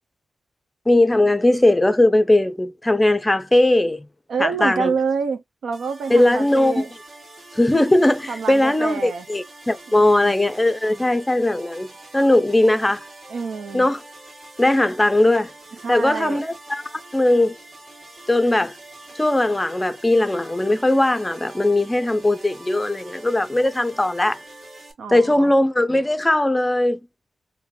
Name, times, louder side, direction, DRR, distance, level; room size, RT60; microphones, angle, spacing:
voice 1, 0.9-4.1 4.4-4.9 6.1-6.8 7.6-11.9 12.1-13.0 13.7-14.0 14.6-15.5 15.9-17.5 18.3-18.7 19.2-24.4 25.1-27.0, left 1 dB, 15° left, 0.5 m, -19 dB
voice 2, 4.3-6.9 8.3-9.3 9.9-10.3 13.3-13.9 15.8-16.4 25.0-25.5, right 5 dB, 85° right, 0.7 m, -27 dB
sound 1, 5.7-24.9, right 2 dB, 50° right, 1.5 m, -44 dB
3.7 x 2.7 x 2.6 m
wide cardioid pair, 100°, 0 cm